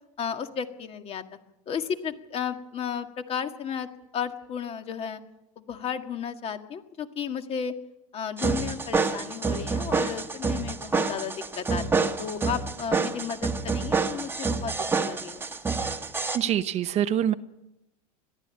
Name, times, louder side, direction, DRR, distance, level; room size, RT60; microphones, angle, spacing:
voice 1, 0.2-1.2 1.7-3.9 4.1-5.2 5.6-7.7 8.1-14.7 15.0-15.5, left 7 dB, 30° left, 7 dB, 1.9 m, -33 dB
sound 1, 8.4-16.4, right 4 dB, 10° right, 1.4 m, -28 dB
voice 2, 16.3-17.3, right 10 dB, 35° right, 12 dB, 0.9 m, -25 dB
22.0 x 14.5 x 8.9 m, 0.90 s
supercardioid pair, 135°, 19 cm